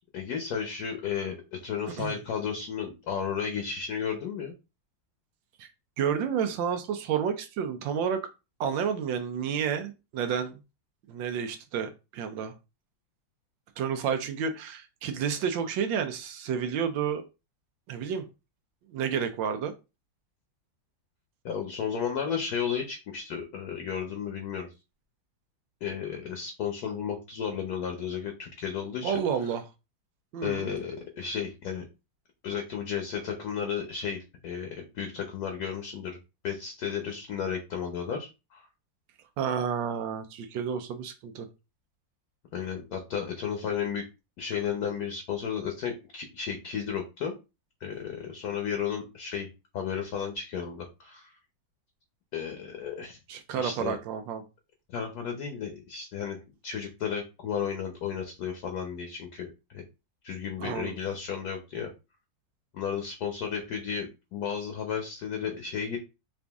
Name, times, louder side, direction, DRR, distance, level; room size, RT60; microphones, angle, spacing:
voice 1, 0.1-4.5 21.4-24.7 25.8-29.2 30.4-31.9 32.4-36.2 36.4-38.6 42.5-44.1 44.4-47.3 47.8-49.5 49.7-51.3 52.3-53.2 53.5-54.0 54.9-56.4 56.6-59.8 60.2-61.9 62.7-66.0, left 7 dB, 60° left, 1.2 m, -33 dB
voice 2, 6.0-8.2 8.6-10.6 11.1-12.5 13.8-17.2 17.9-18.2 18.9-19.7 29.0-29.6 30.3-30.7 39.4-41.5 53.3-54.4 60.6-60.9, right 7 dB, 80° right, 1.3 m, -30 dB
4.9 x 2.6 x 3.4 m
omnidirectional pair, 2.0 m